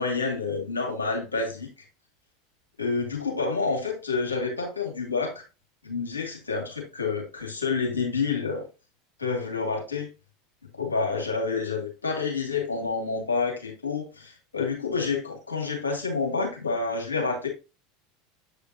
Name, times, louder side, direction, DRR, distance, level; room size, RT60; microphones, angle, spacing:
voice 1, 0.0-1.7 2.8-5.4 5.8-8.7 9.2-10.1 10.7-17.5, left 4 dB, 85° left, 2.5 m, -28 dB
8.2 x 5.0 x 2.9 m
figure-of-eight pair, 80°, 0 cm